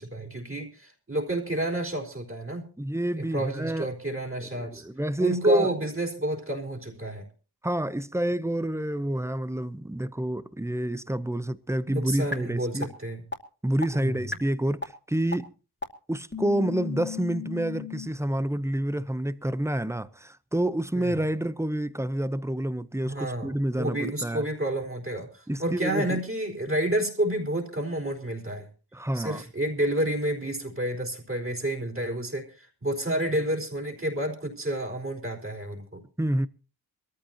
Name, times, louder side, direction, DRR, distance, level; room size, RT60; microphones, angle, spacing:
voice 1, 0.0-2.7 3.2-4.8 5.2-7.3 11.9-13.2 13.9-14.2 20.9-21.1 23.0-28.7 29.1-36.0, right 1 dB, 30° right, 4.2 m, -30 dB
voice 2, 2.8-3.9 4.4-5.7 7.6-12.9 13.6-15.5 16.1-24.4 25.5-26.2 28.9-29.4 36.2-36.5, right 1 dB, 5° right, 0.7 m, -28 dB
sound 1, 12.3-12.4 12.8-12.9 13.3-13.4 13.8-13.9 14.3-14.4 14.8-14.9 15.3-15.4 15.8-15.9 16.3-18.1, left 5 dB, 25° left, 2.5 m, -34 dB
23.5 x 14.0 x 2.9 m
wide cardioid pair, 85°, 40 cm